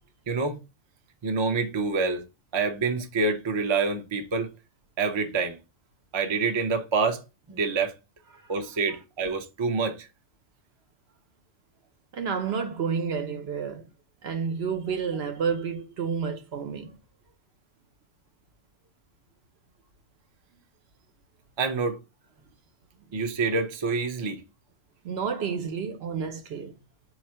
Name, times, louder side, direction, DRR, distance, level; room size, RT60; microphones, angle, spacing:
voice 1, 0.3-0.6 1.2-2.3 2.5-4.5 5.0-5.6 6.1-7.2 7.5-7.9 8.5-10.1 21.6-22.0 23.1-24.4, right 4 dB, 45° right, 0.3 m, -27 dB
voice 2, 12.1-13.9 14.2-17.0 25.0-26.7, right 6 dB, 60° right, 0.8 m, -30 dB
4.3 x 2.4 x 4.3 m
omnidirectional pair, 1.3 m